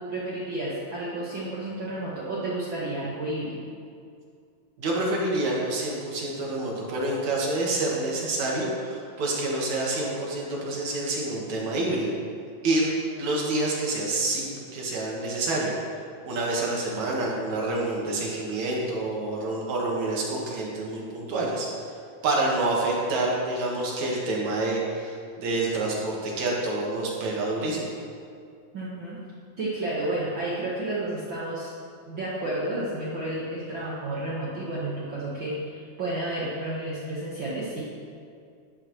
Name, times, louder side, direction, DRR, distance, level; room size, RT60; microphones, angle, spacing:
voice 1, 0.0-3.7 28.7-29.2 29.6-31.7 32.1-37.8, right 1 dB, 50° right, -8 dB, 1.7 m, -31 dB
voice 2, 4.8-12.2 12.6-15.7 16.2-21.7 22.2-27.9, right 2 dB, 65° right, -3 dB, 2.9 m, -27 dB
12.0 x 10.5 x 3.2 m, 2.4 s
omnidirectional pair, 3.6 m